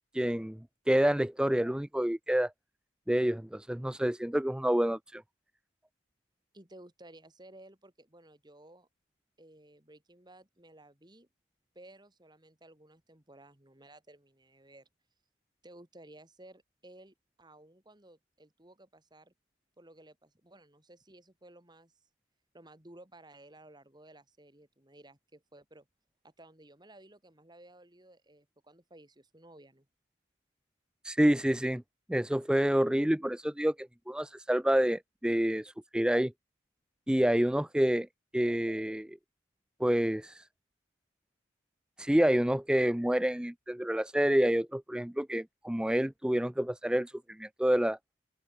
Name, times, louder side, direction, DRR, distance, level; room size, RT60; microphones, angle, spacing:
voice 1, 0.1-0.6 0.9-2.5 3.1-5.2 31.0-31.8 32.1-36.3 37.1-38.1 38.3-39.2 39.8-40.5 42.0-48.0, equal, 5° right, 0.4 m, -28 dB
voice 2, 6.5-8.9 9.4-11.3 11.7-14.9 15.6-19.3 19.8-21.9 22.5-25.9 26.2-29.9, right 1 dB, 20° right, 2.7 m, -56 dB
open air
head